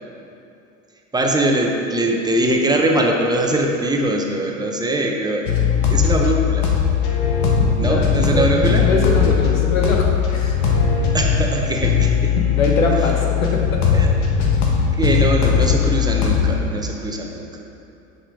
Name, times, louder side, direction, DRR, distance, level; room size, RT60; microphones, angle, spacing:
voice 1, 1.1-5.5 5.9-6.7 7.8-8.9 11.1-12.3 13.9-14.1 14.9-17.5, right 1 dB, 10° right, 1 dB, 0.7 m, -21 dB
sound 1, 5.4-16.6, left 7 dB, 65° left, 1.3 m, -19 dB
voice 2, 7.6-10.5 12.4-13.7, left 2 dB, 85° left, 0 dB, 1.2 m, -22 dB
5.7 x 5.1 x 5.0 m, 2.6 s
hypercardioid pair, 90°, 39 cm